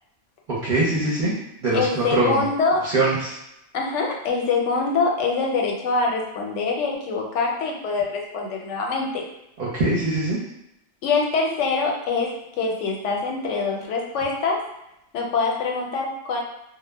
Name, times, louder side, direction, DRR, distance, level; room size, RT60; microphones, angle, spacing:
voice 1, 0.6-1.3 1.6-2.4 2.8-3.3 9.6-10.4, right 2 dB, 50° right, -7 dB, 0.7 m, -22 dB
voice 2, 1.7-2.8 3.7-9.3 11.0-14.6 15.1-16.4, left 4 dB, 85° left, 0 dB, 0.9 m, -24 dB
2.0 x 2.0 x 3.3 m, 0.83 s
omnidirectional pair, 1.2 m